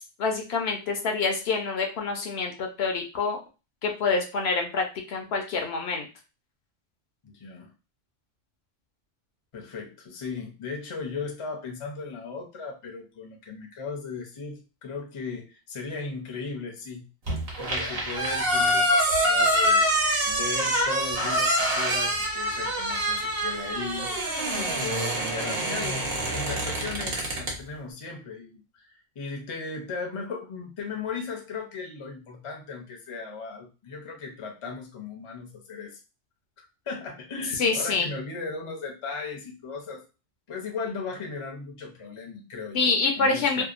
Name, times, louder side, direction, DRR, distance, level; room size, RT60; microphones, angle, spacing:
voice 1, 0.2-3.4 3.8-6.1 37.6-38.1 42.7-43.6, left 4 dB, 65° left, 3 dB, 0.8 m, -26 dB
voice 2, 7.2-7.7 9.5-17.1 17.6-19.9 20.2-24.1 24.5-26.1 26.3-36.0 36.6-40.0 40.5-43.6, left 4 dB, 40° left, 1 dB, 0.5 m, -37 dB
sound 1, 17.3-27.6, equal, 55° right, 1.0 m, -25 dB
2.7 x 2.2 x 2.4 m, 0.30 s
omnidirectional pair, 1.2 m